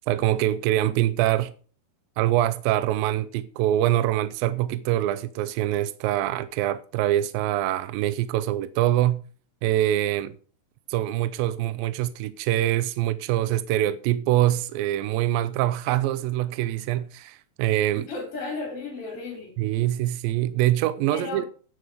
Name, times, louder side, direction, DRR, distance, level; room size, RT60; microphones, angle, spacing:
voice 1, 0.1-1.5 2.2-9.2 9.6-10.4 10.9-18.1 19.6-21.4, right 13 dB, 80° right, 2.1 m, -24 dB
voice 2, 18.1-19.5 21.1-21.5, left 3 dB, 35° left, 4.5 m, -34 dB
9.7 x 9.3 x 5.1 m
omnidirectional pair, 4.7 m